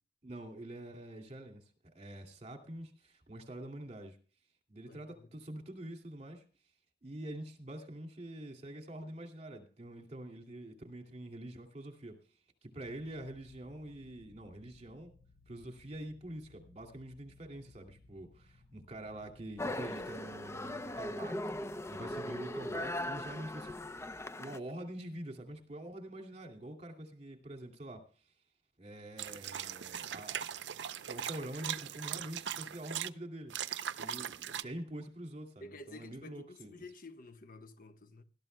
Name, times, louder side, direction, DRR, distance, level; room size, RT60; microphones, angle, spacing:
voice 1, 0.2-4.2 4.7-6.4 7.0-12.2 12.6-15.1 15.5-21.4 21.9-24.1 24.4-28.1 28.8-30.4 31.1-33.5 34.0-36.7, right 1 dB, 40° right, 2.5 m, -46 dB
voice 2, 4.8-5.3 21.9-22.2 34.2-34.7 35.6-38.2, left 2 dB, 50° left, 1.2 m, -52 dB
sound 1, 12.8-24.2, left 2 dB, 80° left, 4.8 m, -63 dB
sound 2, 19.6-24.6, left 1 dB, 15° left, 0.6 m, -39 dB
sound 3, 29.2-33.1 33.5-34.6, right 9 dB, 85° right, 0.6 m, -40 dB
20.0 x 12.5 x 2.2 m
head